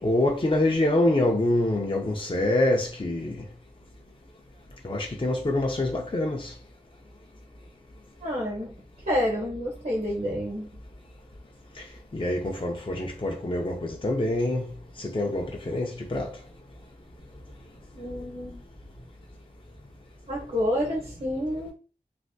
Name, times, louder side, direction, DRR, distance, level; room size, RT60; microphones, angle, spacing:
voice 1, 0.0-3.4 4.8-6.5 11.8-11.9 12.1-14.7 15.0-16.4, left 1 dB, 35° left, 0.5 m, -25 dB
voice 2, 8.2-8.7 9.0-10.7 17.9-18.6 20.3-21.7, equal, 70° right, 1.0 m, -28 dB
3.3 x 2.5 x 2.7 m
wide cardioid pair, 50°, 16 cm